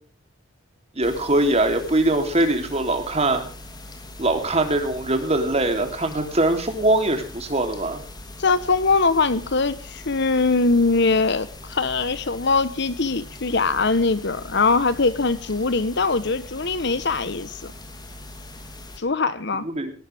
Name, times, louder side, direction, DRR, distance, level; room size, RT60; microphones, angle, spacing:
sound 1, 1.0-19.0, left 2 dB, 20° left, 3.2 m, -41 dB
voice 1, 1.0-3.4 4.2-8.0 19.6-19.9, right 2 dB, 35° right, 6 dB, 3.3 m, -22 dB
voice 2, 8.4-17.7 19.0-19.7, left 3 dB, 60° left, 15 dB, 1.1 m, -22 dB
18.5 x 17.5 x 3.5 m, 0.39 s
head